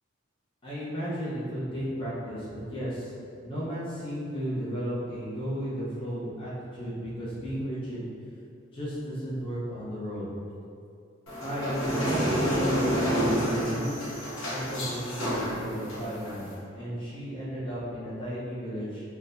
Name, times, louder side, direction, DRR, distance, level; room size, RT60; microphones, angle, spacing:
voice 1, 0.6-3.1 3.4-8.1 8.7-10.3 11.4-14.1 14.4-19.0, equal, 25° left, -10 dB, 0.8 m, -34 dB
sound 1, 11.3-16.5, equal, 85° left, 0.8 m, -29 dB
4.0 x 2.2 x 2.6 m, 2.5 s
head